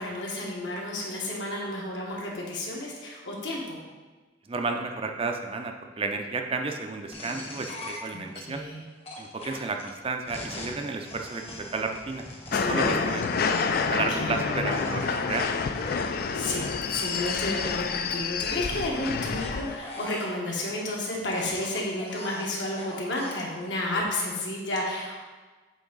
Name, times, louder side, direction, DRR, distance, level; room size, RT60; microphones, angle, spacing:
voice 1, 0.0-3.8 8.1-8.8 12.5-13.1 13.9-14.3 16.1-25.2, left 1 dB, 70° left, -2 dB, 1.5 m, -32 dB
voice 2, 4.5-8.6 9.2-13.3 13.9-15.4, right 3 dB, 30° right, 4 dB, 0.5 m, -32 dB
sound 1, 7.1-8.4 9.0-13.9 14.7-16.1 16.9-17.4 18.6-20.3 21.2-23.4, left 2 dB, 30° left, 0.9 m, -41 dB
sound 2, 12.5-19.8, left 5 dB, 50° left, 0.4 m, -28 dB
8.2 x 3.5 x 3.9 m, 1.3 s
head